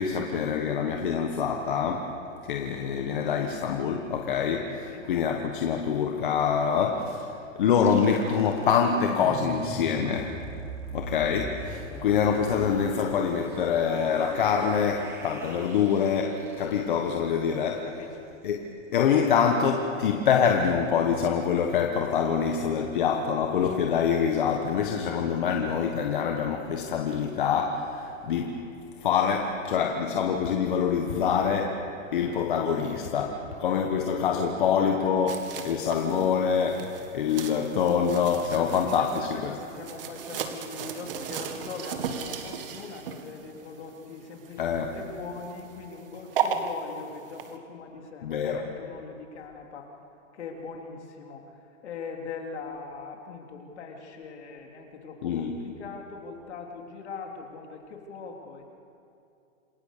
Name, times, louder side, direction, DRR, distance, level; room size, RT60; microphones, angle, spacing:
voice 1, 0.0-2.1 2.4-10.3 10.9-17.8 18.4-18.6 18.9-28.6 29.0-31.8 32.1-39.5 44.6-44.9 48.2-48.6 55.2-55.5, left 7 dB, 40° left, 3 dB, 1.4 m, -25 dB
voice 2, 4.7-5.1 11.9-12.1 17.8-18.4 32.1-32.2 33.3-34.8 35.5-35.7 38.5-49.9 50.3-58.7, left 4 dB, 55° left, 1 dB, 3.5 m, -42 dB
sound 1, 7.7-17.6, right 3 dB, 5° right, 0.9 m, -40 dB
sound 2, 35.3-47.6, right 7 dB, 45° right, 1.9 m, -36 dB
28.0 x 20.5 x 6.7 m, 2.6 s
hypercardioid pair, 175°, 39 cm